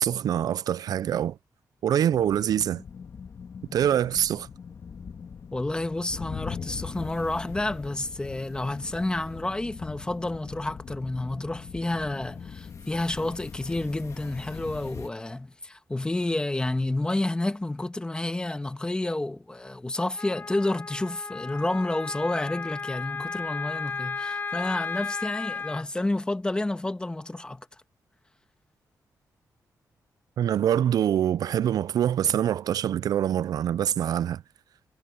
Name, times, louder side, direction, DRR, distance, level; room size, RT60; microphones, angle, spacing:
voice 1, 0.0-1.4 1.8-2.8 3.7-4.5 30.4-34.4, right 10 dB, 70° right, 0.4 m, -24 dB
sound 1, 2.1-15.1, left 6 dB, 50° left, 2.1 m, -41 dB
voice 2, 5.5-27.7, left 2 dB, 15° left, 1.4 m, -30 dB
Wind instrument woodwind instrument, 20.1-25.8, left 5 dB, 30° left, 0.3 m, -34 dB
wide cardioid pair, 125°, 7 cm